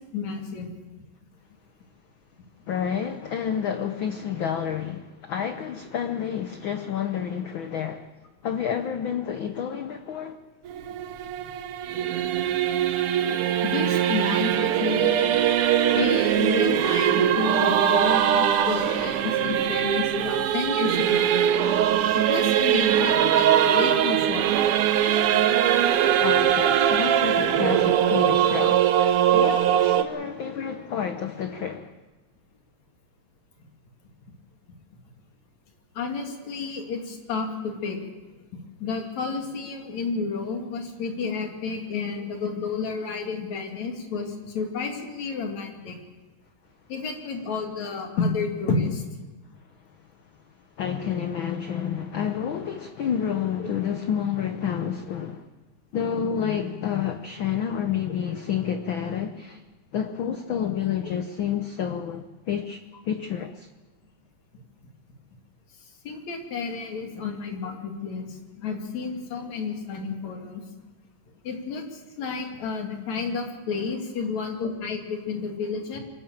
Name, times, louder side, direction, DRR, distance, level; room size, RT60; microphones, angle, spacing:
voice 1, 0.1-0.7 13.6-15.1 15.9-21.3 22.1-24.5 25.9-26.0 36.0-38.0 38.8-46.0 46.9-49.0 53.6-53.7 66.1-70.6 71.4-76.0, left 4 dB, 70° left, 3.7 m, -31 dB
voice 2, 2.7-8.1 8.4-10.4 26.2-31.9 50.8-55.5 55.9-59.6 59.9-62.8 63.1-63.7, left 8 dB, 85° left, 1.1 m, -29 dB
Singing / Musical instrument, 10.7-30.0, right 10 dB, 70° right, 1.4 m, -21 dB
23.5 x 13.5 x 9.0 m
omnidirectional pair, 3.4 m